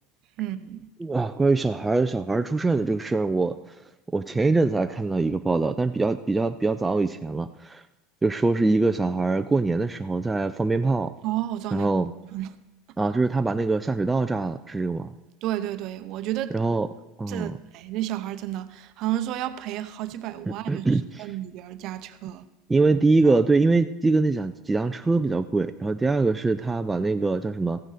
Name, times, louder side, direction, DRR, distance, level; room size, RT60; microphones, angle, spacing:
voice 1, 0.4-0.9 11.2-11.9 12.3-12.5 15.4-16.6 17.3-22.4 23.2-23.4, right 13 dB, 50° right, 0.7 m, -31 dB
voice 2, 1.0-3.7 4.1-7.8 8.2-11.1 11.7-12.1 13.0-15.1 16.5-16.9 17.2-17.6 20.5-21.3 22.7-27.8, right 3 dB, 10° right, 0.3 m, -23 dB
14.5 x 9.2 x 4.1 m
supercardioid pair, 140°, 0 cm